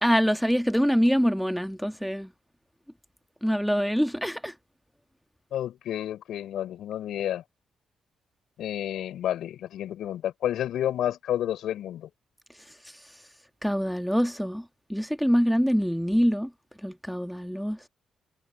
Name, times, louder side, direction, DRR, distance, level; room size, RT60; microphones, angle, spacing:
voice 1, 0.0-2.3 3.4-4.5 13.6-14.6 14.9-16.5 16.8-17.9, equal, ahead, 1.5 m, -25 dB
voice 2, 5.5-7.4 8.6-12.1, left 11 dB, 70° left, 4.5 m, -30 dB
hypercardioid pair, 45°, 0 cm